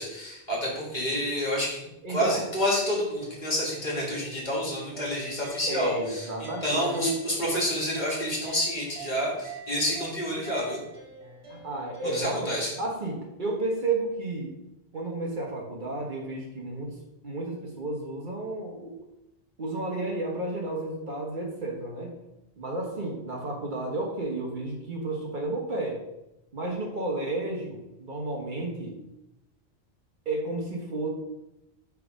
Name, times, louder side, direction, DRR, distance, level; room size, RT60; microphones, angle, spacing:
voice 1, 0.0-1.8 2.1-10.8 12.0-12.7, equal, 45° left, -3 dB, 1.6 m, -29 dB
voice 2, 2.0-2.4 5.7-7.1 11.5-12.5 12.8-14.5 14.9-16.9 17.2-19.0 19.6-22.1 22.6-26.0 26.5-29.0 30.3-31.1, right 2 dB, 50° right, 0 dB, 1.1 m, -32 dB
sound 1, 3.1-12.2, right 3 dB, 65° right, 1.7 m, -44 dB
5.9 x 3.5 x 4.8 m, 0.91 s
omnidirectional pair, 1.1 m